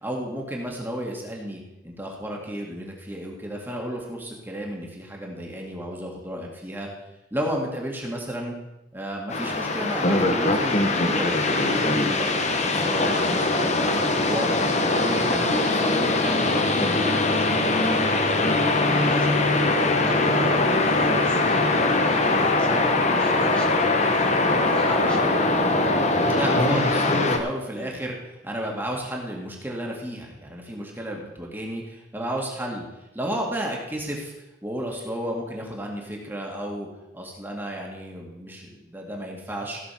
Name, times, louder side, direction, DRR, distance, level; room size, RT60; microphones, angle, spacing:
voice 1, 0.0-6.9 7.3-8.6 8.9-11.3 11.6-14.5 14.9-17.8 26.2-32.8 33.1-34.3 34.6-36.9 37.1-39.8, equal, 10° right, -1 dB, 2.2 m, -32 dB
sound 1, 9.3-27.4, left 2 dB, 35° left, 1.2 m, -22 dB
voice 2, 19.0-25.5 27.8-27.9, right 1 dB, 5° left, -4 dB, 1.9 m, -38 dB
16.5 x 6.8 x 6.0 m, 0.92 s
head